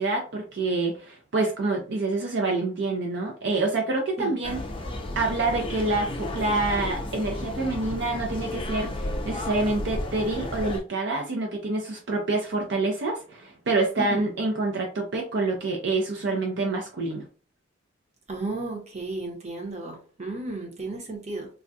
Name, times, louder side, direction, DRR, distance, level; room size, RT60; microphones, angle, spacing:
voice 1, 0.0-4.6 5.2-17.2, right 2 dB, 60° right, 0.5 m, -27 dB
sound 1, 4.4-10.8, left 1 dB, 25° left, 0.5 m, -33 dB
voice 2, 18.3-21.5, right 2 dB, 35° right, 0.9 m, -33 dB
3.4 x 2.2 x 2.6 m
head